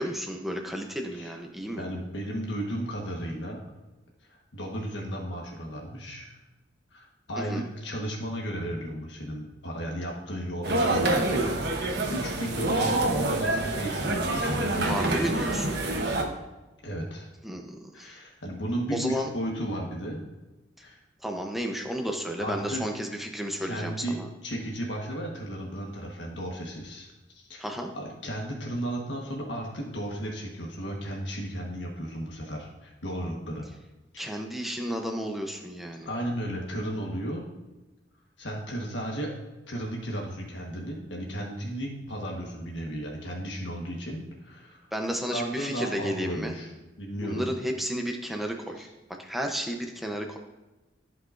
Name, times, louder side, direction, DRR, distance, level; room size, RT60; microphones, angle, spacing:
voice 1, 0.0-1.8 7.4-7.7 14.9-15.8 17.4-18.2 18.9-19.3 21.2-24.3 27.6-27.9 34.2-36.1 44.9-46.5 47.2-48.9 49.2-50.4, equal, ahead, 2 dB, 0.8 m, -32 dB
voice 2, 1.8-3.6 4.2-6.4 6.9-15.5 16.8-17.3 17.9-20.2 20.8-21.0 22.4-22.9 23.6-27.6 27.9-33.7 34.1-34.4 36.0-37.5 38.4-39.4 39.7-44.8 45.3-46.7 47.0-47.5 48.8-48.9, right 1 dB, 75° left, -1 dB, 1.5 m, -34 dB
sound 1, 10.6-16.2, right 2 dB, 60° right, 1.2 m, -27 dB
14.5 x 5.7 x 2.6 m, 1.1 s
head